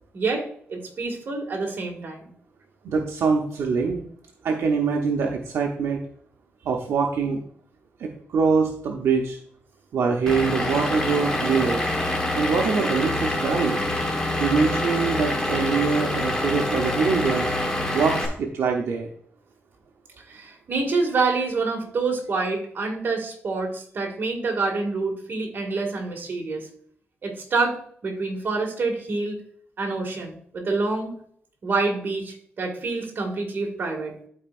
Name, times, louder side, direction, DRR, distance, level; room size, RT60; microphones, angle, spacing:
voice 1, 0.1-2.3 20.2-26.7 27.2-27.8 28.0-29.4 29.8-31.1 31.6-34.1, right 3 dB, 50° right, 1 dB, 2.1 m, -27 dB
voice 2, 2.8-4.0 4.4-6.0 6.6-7.4 8.0-9.4 9.9-11.8 12.3-13.8 14.4-17.5 17.9-19.1, right 5 dB, 80° right, 1 dB, 0.8 m, -24 dB
Vehicle / Engine, 10.3-18.3, left 1 dB, 15° left, 1.4 m, -26 dB
12.0 x 4.6 x 2.5 m, 0.62 s
wide cardioid pair, 130°, 4 cm